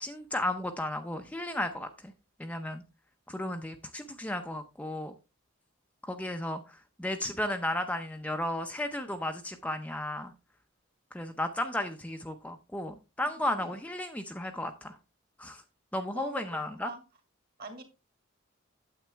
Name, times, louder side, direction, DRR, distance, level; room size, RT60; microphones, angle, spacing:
voice 1, 0.0-2.1 2.4-2.8 3.3-5.1 6.0-10.3 11.1-15.0 15.4-15.6 15.9-16.9, left 1 dB, 5° left, 0.5 m, -34 dB
voice 2, 16.2-17.0 17.6-17.8, right 2 dB, 45° right, 2.1 m, -42 dB
9.2 x 7.8 x 3.4 m
head